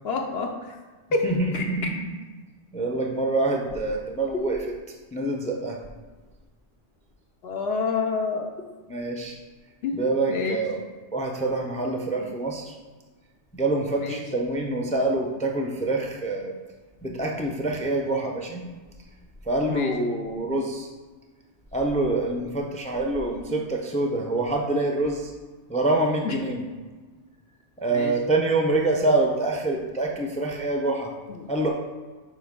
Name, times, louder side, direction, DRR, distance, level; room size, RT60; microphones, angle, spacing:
voice 1, 0.0-0.8 1.1-1.3 1.5-1.6 7.4-8.5 9.8-10.0 10.3-10.6 12.2-12.3 14.0-14.2 19.7-19.9 26.2-26.4 27.9-28.1 31.3-31.5, left 4 dB, 60° left, 2 dB, 0.9 m, -28 dB
voice 2, 1.2-2.0 2.7-4.6 5.1-5.8 8.9-9.4 9.9-10.8 11.1-12.7 13.5-16.5 17.0-18.6 19.5-20.9 21.7-25.3 25.7-26.6 27.8-31.1 31.5-31.7, right 2 dB, 10° left, 1 dB, 0.5 m, -26 dB
7.7 x 3.1 x 5.2 m, 1.3 s
omnidirectional pair, 1.2 m